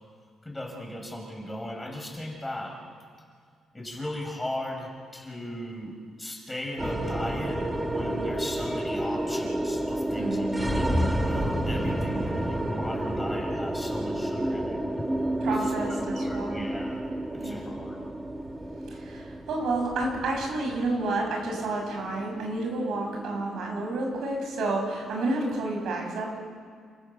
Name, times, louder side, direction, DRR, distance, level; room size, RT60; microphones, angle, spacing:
voice 1, 0.4-2.8 3.7-10.5 10.7-14.8 15.4-15.7 16.0-17.1 17.4-18.0, left 1 dB, 10° left, 1 dB, 6.0 m, -37 dB
sound 1, 6.8-25.2, right 1 dB, 15° right, 2.3 m, -30 dB
voice 2, 10.2-11.0 12.1-12.5 15.4-16.7 17.4-17.7 19.0-19.2 19.5-26.3, right 2 dB, 75° right, 1 dB, 6.9 m, -30 dB
29.5 x 15.0 x 7.3 m, 2.1 s
cardioid pair, 90°, 0 cm